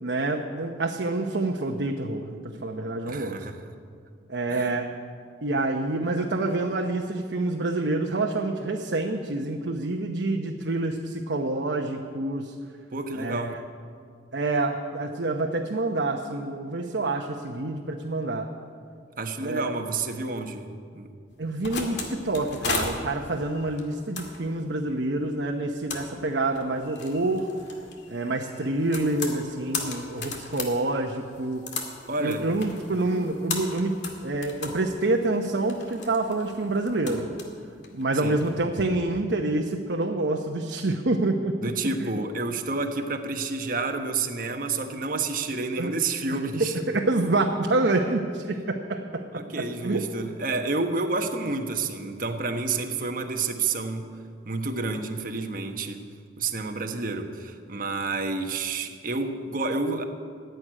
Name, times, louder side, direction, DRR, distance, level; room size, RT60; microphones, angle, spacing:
voice 1, 0.0-3.4 4.3-4.9 5.4-12.5 13.1-13.6 14.3-18.5 19.4-19.7 21.4-27.5 28.1-31.7 32.2-37.3 37.9-41.6 42.0-42.1 45.8-45.9 46.6-50.0, right 2 dB, 80° right, 2 dB, 0.9 m, -27 dB
voice 2, 3.1-3.6 4.5-4.8 12.9-13.5 19.2-21.1 32.1-32.5 38.2-38.4 41.6-46.7 49.3-54.1 54.4-56.0 56.4-60.0, right 3 dB, 50° right, 5 dB, 1.2 m, -29 dB
sound 1, 21.3-38.5, left 4 dB, 75° left, 2.1 m, -37 dB
15.0 x 8.0 x 9.9 m, 2.2 s
head